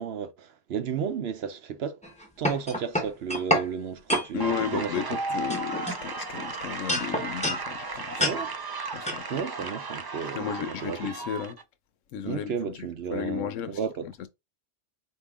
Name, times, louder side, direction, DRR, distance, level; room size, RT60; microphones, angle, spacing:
voice 1, 0.0-2.0 2.4-5.2 8.2-8.5 9.3-11.0 12.2-14.1, right 7 dB, 65° right, 0.8 m, -33 dB
sound 1, 2.0-3.7 4.1-4.3 5.0-5.2 5.5-6.5 6.9-7.6 8.2-8.4 9.1-9.2, equal, 5° left, 0.9 m, -28 dB
voice 2, 4.3-8.4 8.9-9.4 10.3-11.6 12.1-12.7 13.1-13.8, left 8 dB, 90° left, 1.0 m, -33 dB
sound 2, 4.4-11.6, right 3 dB, 40° right, 0.3 m, -35 dB
4.7 x 2.7 x 3.5 m
omnidirectional pair, 1.3 m